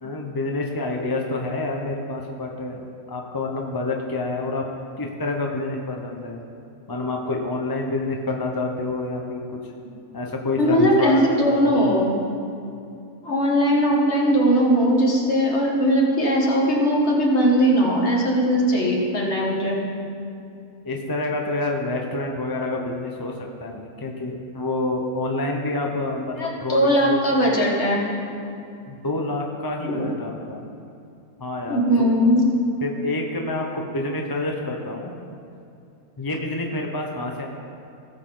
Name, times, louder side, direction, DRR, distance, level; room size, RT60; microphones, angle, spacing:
voice 1, 0.0-2.8 3.1-4.6 5.0-6.4 6.9-9.6 10.1-12.1 20.8-27.2 28.9-30.7 31.4-32.1 32.8-35.1 36.2-37.5, left 2 dB, 20° left, 1 dB, 0.6 m, -28 dB
voice 2, 10.6-12.2 13.2-19.8 26.4-28.0 29.8-30.1 31.7-32.4, equal, 45° left, -3 dB, 2.0 m, -19 dB
17.5 x 7.1 x 3.9 m, 2.6 s
omnidirectional pair, 1.7 m